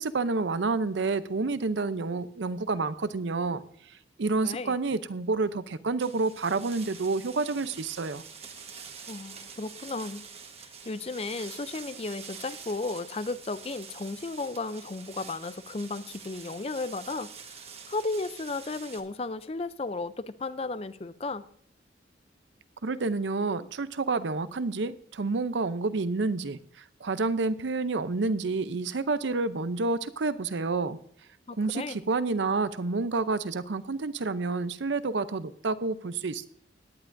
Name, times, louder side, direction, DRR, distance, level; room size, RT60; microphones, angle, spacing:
voice 1, 0.0-3.6 3.9-8.2 22.8-31.0 31.6-36.5, right 3 dB, 75° right, 14 dB, 0.6 m, -29 dB
voice 2, 4.4-4.8 9.1-10.2 10.6-21.5 31.5-32.0, left 3 dB, 30° left, 14 dB, 0.4 m, -34 dB
sound 1, 6.0-19.0, right 6 dB, 35° right, 1.3 m, -46 dB
17.5 x 10.5 x 2.6 m, 0.64 s
head